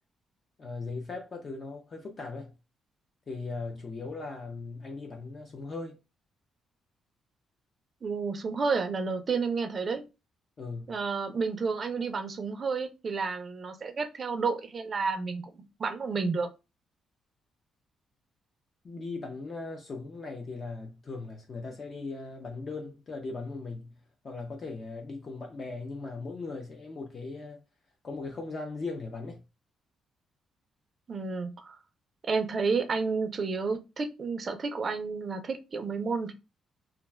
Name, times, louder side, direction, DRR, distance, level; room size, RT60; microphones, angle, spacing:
voice 1, 0.6-2.5 3.3-6.0 10.6-11.0 18.8-23.9 24.2-27.6 28.0-29.4, left 3 dB, 30° left, 0.4 m, -38 dB
voice 2, 8.0-10.0 10.9-16.5 31.1-31.8 32.2-36.3, right 4 dB, 30° right, 0.4 m, -31 dB
2.3 x 2.2 x 3.3 m
cardioid pair, 170°, 0 cm